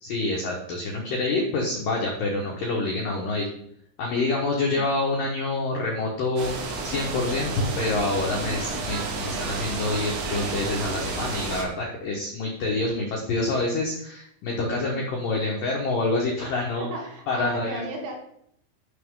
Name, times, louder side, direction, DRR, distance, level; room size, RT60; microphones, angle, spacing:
voice 1, 0.0-3.5 4.0-16.9 17.3-17.8, left 2 dB, 70° left, -2 dB, 2.1 m, -27 dB
sound 1, 6.4-11.6, right 3 dB, 80° right, 4.3 m, -31 dB
voice 2, 14.6-15.1 16.8-18.1, right 2 dB, 65° right, 0 dB, 3.3 m, -36 dB
12.0 x 6.2 x 3.8 m, 0.70 s
omnidirectional pair, 6.0 m